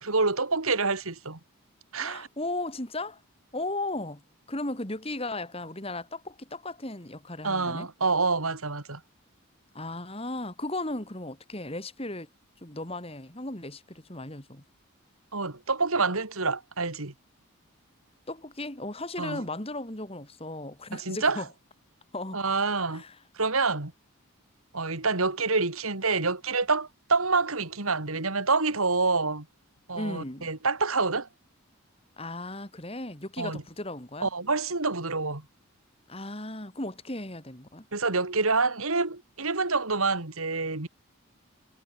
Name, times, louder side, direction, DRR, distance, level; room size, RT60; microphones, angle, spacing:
voice 1, 0.0-1.4 1.9-2.3 7.4-9.0 15.3-17.1 19.2-19.4 20.9-21.4 22.3-23.0 23.4-23.9 24.7-29.5 29.9-31.3 33.4-33.6 34.2-35.4 37.9-40.9, right 4 dB, 75° right, 2.7 m, -27 dB
voice 2, 2.0-3.2 3.5-4.2 4.5-7.9 9.7-12.3 12.6-14.6 18.3-21.5 22.1-22.4 22.9-23.2 29.9-30.5 32.2-34.3 36.1-37.9, left 2 dB, 25° left, 3.0 m, -36 dB
head